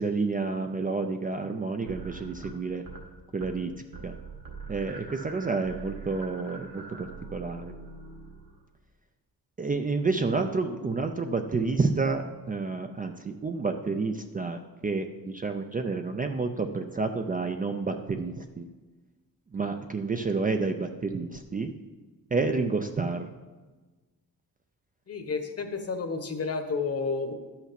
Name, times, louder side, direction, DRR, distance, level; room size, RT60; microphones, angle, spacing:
voice 1, 0.0-2.8 3.3-3.7 4.0-4.1 4.7-7.7 9.6-18.7 19.5-21.7 22.3-23.3, right 4 dB, 25° right, 6 dB, 0.4 m, -29 dB
sound 1, 1.9-3.1 3.3-3.7 3.9-8.7, right 4 dB, 65° right, 1.8 m, -43 dB
voice 2, 25.1-27.3, left 4 dB, 40° left, 7 dB, 1.1 m, -31 dB
12.0 x 5.8 x 5.8 m, 1.3 s
wide cardioid pair, 150°, 37 cm